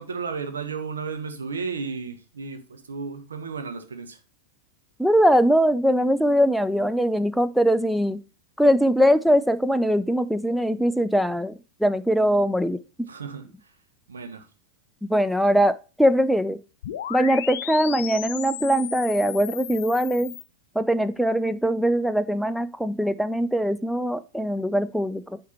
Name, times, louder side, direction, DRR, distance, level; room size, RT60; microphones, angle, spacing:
voice 1, 0.0-4.2 13.1-13.7 14.1-14.5, right 5 dB, 70° right, 1.1 m, -33 dB
voice 2, 5.0-8.2 8.6-11.5 11.8-12.8 15.0-16.6 17.1-20.4 20.8-25.4, equal, ahead, 0.4 m, -21 dB
sound 1, 16.8-20.4, left 10 dB, 60° left, 0.5 m, -35 dB
8.4 x 4.5 x 4.2 m
figure-of-eight pair, 90°, 0 cm